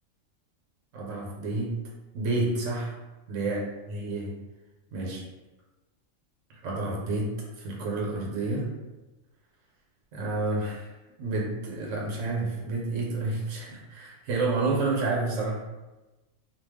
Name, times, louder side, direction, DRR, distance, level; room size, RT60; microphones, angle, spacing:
voice 1, 0.9-1.7 2.1-2.9 3.3-4.3 4.9-5.2 6.6-8.7 10.1-10.9 11.2-15.6, right 2 dB, 75° right, -2 dB, 1.0 m, -29 dB
2.3 x 2.2 x 3.4 m, 1.1 s
omnidirectional pair, 1.3 m